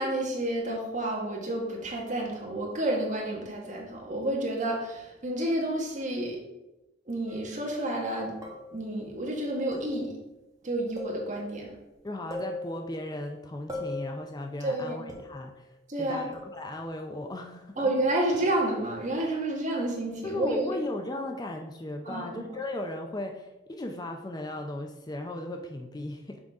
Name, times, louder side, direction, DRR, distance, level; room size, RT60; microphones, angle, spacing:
voice 1, 0.0-6.4 7.1-8.4 8.7-10.1 10.6-11.8 14.6-15.1 15.9-16.3 17.8-20.7 22.0-22.5, right 1 dB, 40° right, -1 dB, 1.5 m, -30 dB
sound 1, 7.3-7.6 8.4-8.9 9.7-10.3 11.0-11.6 11.9-12.0 12.3-13.1 13.7-14.3 15.1-15.6 16.3-16.8 18.3-19.3, left 2 dB, 20° right, 1.2 m, -40 dB
voice 2, 12.0-15.7 16.0-17.9 20.2-26.4, left 1 dB, 20° left, 3 dB, 0.5 m, -36 dB
6.1 x 3.9 x 4.7 m, 0.97 s
head